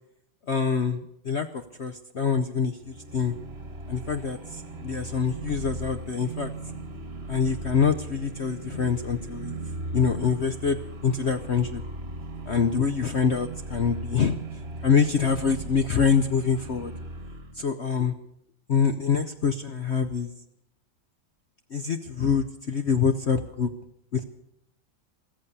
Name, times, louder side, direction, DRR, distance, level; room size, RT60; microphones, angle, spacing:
voice 1, 0.5-1.5 1.8-3.3 3.9-6.5 7.3-9.6 9.9-11.8 12.5-14.4 14.8-16.9 17.6-18.1 18.7-20.3 21.7-23.7 24.1-24.2, left 6 dB, 55° left, 8 dB, 0.7 m, -25 dB
sound 1, 2.8-17.6, right 2 dB, 35° right, 1.5 m, -38 dB
14.5 x 14.0 x 6.8 m, 0.75 s
omnidirectional pair, 2.1 m